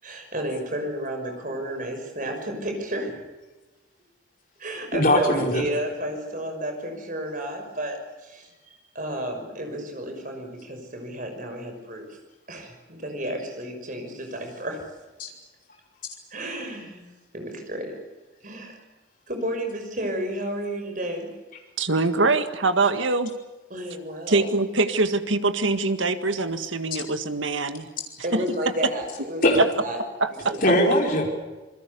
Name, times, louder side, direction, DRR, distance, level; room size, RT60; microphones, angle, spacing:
voice 1, 0.0-3.2 4.6-8.5 8.9-12.2 12.5-14.8 16.3-17.1 17.3-18.0 18.4-18.8 19.3-21.3 23.7-24.5 28.2-30.0 30.4-30.6, right 1 dB, 45° right, 4 dB, 5.9 m, -32 dB
voice 2, 4.9-5.6 15.2-15.3 29.4-29.6 30.6-31.3, left 1 dB, 45° left, 0 dB, 5.1 m, -20 dB
voice 3, 21.8-23.3 24.3-27.9 28.3-28.4 30.2-30.5, right 3 dB, 80° right, 9 dB, 1.8 m, -23 dB
27.0 x 21.5 x 6.9 m, 1.2 s
head